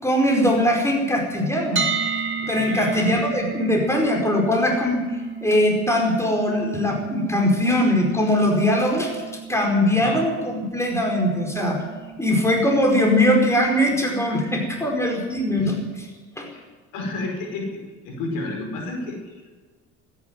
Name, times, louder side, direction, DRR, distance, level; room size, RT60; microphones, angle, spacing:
voice 1, 0.0-1.8 2.4-5.0 5.4-9.1 9.5-11.8 12.2-15.7 16.4-16.5, left 1 dB, 10° left, 0 dB, 4.9 m, -21 dB
sound 1, 1.8-13.7, right 6 dB, 35° right, 1.5 m, -33 dB
voice 2, 2.5-3.1 9.9-10.2 15.6-15.7 16.5-16.7 16.9-19.6, left 2 dB, 85° left, 1 dB, 5.3 m, -31 dB
13.5 x 11.0 x 9.4 m, 1.4 s
cardioid pair, 90°, 32 cm